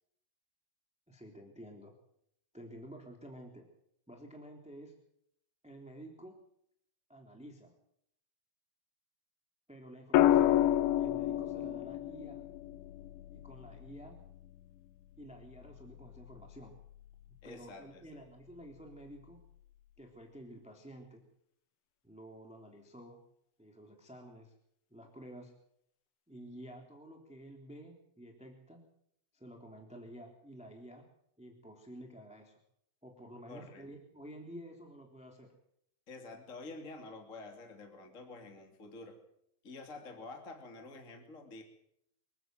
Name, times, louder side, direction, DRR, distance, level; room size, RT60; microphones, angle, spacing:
voice 1, 1.1-1.9 2.5-3.7 4.1-4.9 5.6-6.4 7.1-7.7 9.7-10.7 11.0-12.4 13.3-14.2 15.2-16.7 17.4-19.4 20.0-21.2 22.0-23.2 23.6-24.5 24.9-25.5 26.3-28.8 29.3-31.0 31.4-32.6 33.0-35.5, right 1 dB, ahead, 2 dB, 2.2 m, -51 dB
sound 1, 10.1-14.3 16.0-16.4, left 12 dB, 80° left, 3.3 m, -29 dB
voice 2, 17.4-18.2 33.5-33.9 36.1-39.2 39.6-41.6, left 3 dB, 25° left, 3 dB, 2.1 m, -49 dB
25.0 x 15.5 x 7.8 m, 0.73 s
omnidirectional pair, 5.4 m